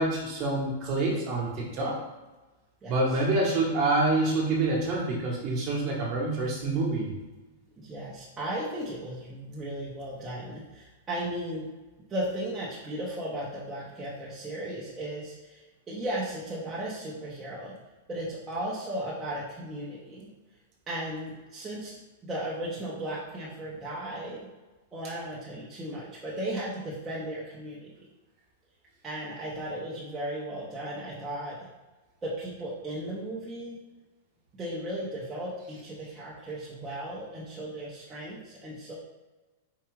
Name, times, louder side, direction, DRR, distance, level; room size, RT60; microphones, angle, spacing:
voice 1, 0.0-2.0 2.9-7.1, right 2 dB, 30° right, -2 dB, 1.2 m, -27 dB
voice 2, 7.8-11.7 12.1-17.7 18.1-20.3 20.9-21.9 22.2-24.5 24.9-27.9 29.0-31.7 32.2-33.8 34.6-38.9, right 1 dB, 10° right, -7 dB, 0.8 m, -36 dB
4.6 x 2.4 x 4.6 m, 1.2 s
supercardioid pair, 170°, 0 cm